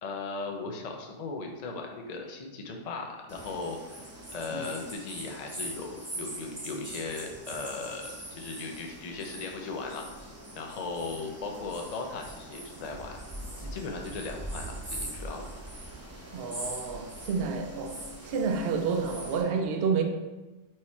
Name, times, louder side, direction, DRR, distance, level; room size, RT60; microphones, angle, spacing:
voice 1, 0.0-3.8 4.3-13.2 13.6-15.4, left 3 dB, 40° left, 0.6 m, -37 dB
sound 1, 3.3-19.4, right 1 dB, 15° right, 0.6 m, -42 dB
voice 2, 16.3-20.0, right 5 dB, 55° right, 0.7 m, -30 dB
4.8 x 4.7 x 4.2 m
omnidirectional pair, 1.5 m